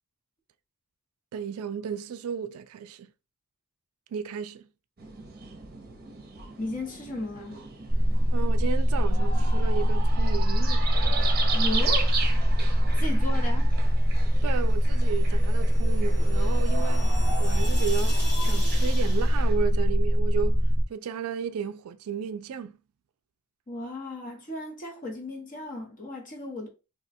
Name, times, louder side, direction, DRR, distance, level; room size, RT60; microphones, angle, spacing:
voice 1, 1.3-3.1 4.1-4.7 8.3-10.9 14.4-20.6 20.9-22.8, right 7 dB, 75° right, 0.3 m, -34 dB
sound 1, 5.0-19.5, right 5 dB, 45° right, 0.7 m, -37 dB
voice 2, 6.6-7.6 11.5-12.2 13.0-13.7 23.7-26.7, left 2 dB, 35° left, 0.9 m, -35 dB
sound 2, 7.9-20.8, equal, 5° left, 0.4 m, -22 dB
sound 3, 14.9-19.4, equal, 60° left, 1.5 m, -37 dB
2.8 x 2.2 x 4.1 m
head